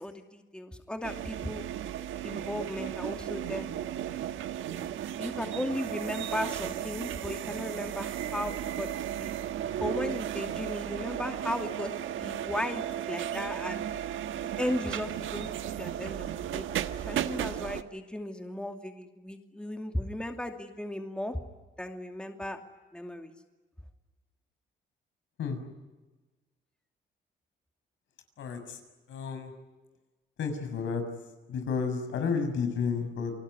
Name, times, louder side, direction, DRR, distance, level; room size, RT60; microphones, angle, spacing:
voice 1, 0.0-1.6 2.2-3.7 5.2-8.9 9.2-9.3 9.8-11.9 12.2-13.8 14.6-16.7 17.0-21.4 21.8-22.6 22.9-23.3, left 1 dB, 5° left, 5 dB, 2.6 m, -36 dB
sound 1, 1.0-17.8, right 10 dB, 80° right, 1.4 m, -35 dB
voice 2, 28.4-28.8 29.1-29.5 30.4-31.0 31.5-33.3, left 5 dB, 75° left, 7 dB, 6.5 m, -31 dB
29.0 x 19.5 x 9.8 m, 1.2 s
cardioid pair, 90°, 20 cm